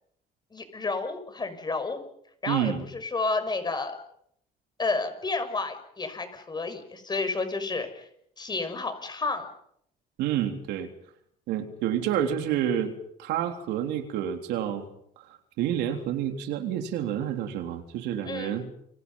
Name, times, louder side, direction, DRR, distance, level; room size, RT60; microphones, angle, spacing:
voice 1, 0.5-2.0 2.4-3.9 4.8-8.1 8.4-9.5 18.2-18.6, left 3 dB, 25° left, 9 dB, 5.9 m, -31 dB
voice 2, 2.5-2.8 10.2-10.9 11.5-12.9 13.2-14.9 15.2-15.3 15.6-18.7, right 10 dB, 85° right, 5 dB, 3.5 m, -29 dB
29.0 x 24.5 x 5.6 m, 0.72 s
cardioid pair, 110°, 17 cm